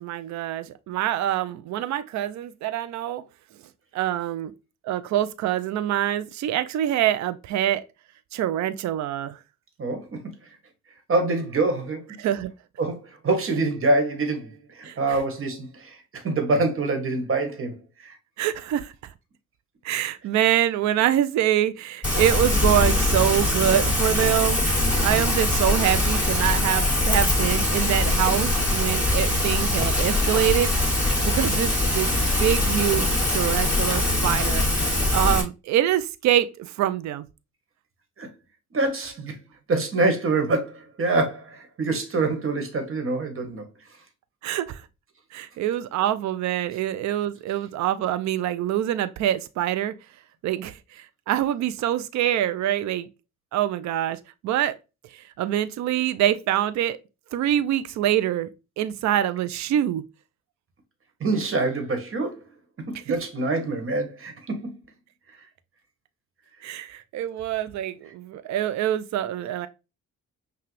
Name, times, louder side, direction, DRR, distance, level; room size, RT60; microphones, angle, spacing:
voice 1, 0.0-3.2 3.9-4.5 4.8-7.8 8.3-9.4 12.2-12.5 14.8-15.2 18.4-18.9 19.8-30.7 31.2-34.6 35.1-37.3 44.4-44.8 45.3-49.9 50.4-53.1 53.5-54.7 55.1-57.0 57.3-58.5 58.8-60.0 63.1-63.2 66.6-69.7, right 12 dB, 70° right, 0.5 m, -25 dB
voice 2, 11.1-12.1 12.8-17.8 18.0-18.2 38.2-38.3 38.7-39.3 39.7-43.6 61.2-62.4 62.9-64.7, right 2 dB, 45° right, 1.4 m, -25 dB
Rain, 22.0-35.4, left 1 dB, 5° right, 2.3 m, -22 dB
5.8 x 2.4 x 3.3 m
cardioid pair, 90°, 30 cm